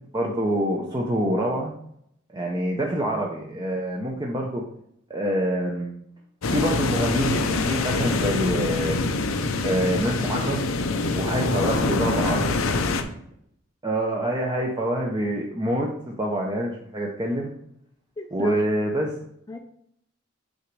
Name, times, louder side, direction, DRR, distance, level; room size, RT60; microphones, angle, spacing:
voice 1, 0.1-1.7 2.3-4.6 5.1-5.9 6.5-9.0 9.6-10.7 11.1-12.6 13.8-17.5 18.3-19.1, right 1 dB, 20° right, -1 dB, 0.6 m, -26 dB
sound 1, 6.4-13.0, left 3 dB, 85° left, 0.6 m, -25 dB
voice 2, 18.2-18.7 19.5-19.6, left 2 dB, 20° left, 4 dB, 0.4 m, -38 dB
6.3 x 3.9 x 4.7 m, 0.71 s
head